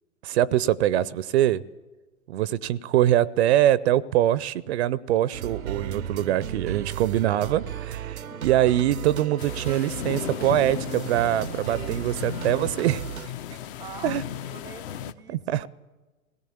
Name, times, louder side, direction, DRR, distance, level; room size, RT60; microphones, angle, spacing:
voice 1, 0.2-1.6 2.3-13.0 14.0-14.2 15.3-15.6, right 12 dB, 50° right, 0.6 m, -23 dB
sound 1, 5.3-13.3, right 8 dB, 85° right, 0.7 m, -35 dB
sound 2, 8.0-13.3, left 5 dB, 80° left, 2.3 m, -49 dB
sound 3, 9.4-15.1, left 10 dB, 40° left, 0.9 m, -35 dB
voice 2, 13.8-15.7, right 6 dB, 10° right, 0.7 m, -44 dB
18.0 x 17.0 x 8.7 m
figure-of-eight pair, 105°, 42 cm